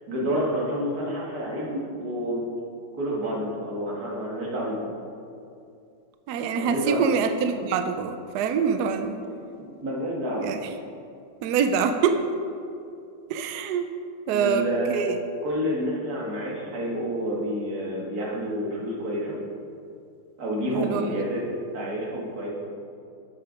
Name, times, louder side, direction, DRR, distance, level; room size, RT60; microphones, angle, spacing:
voice 1, 0.1-2.5 3.0-4.8 6.5-7.0 9.6-10.5 14.3-15.0 15.4-19.4 20.4-21.4 21.7-22.5, equal, 45° right, -3 dB, 2.1 m, -29 dB
voice 2, 6.3-9.2 10.4-10.6 11.4-12.2 13.3-13.9 14.3-15.2 20.7-21.2, right 6 dB, 85° right, 7 dB, 0.9 m, -25 dB
8.8 x 6.7 x 5.0 m, 2.5 s
omnidirectional pair, 2.3 m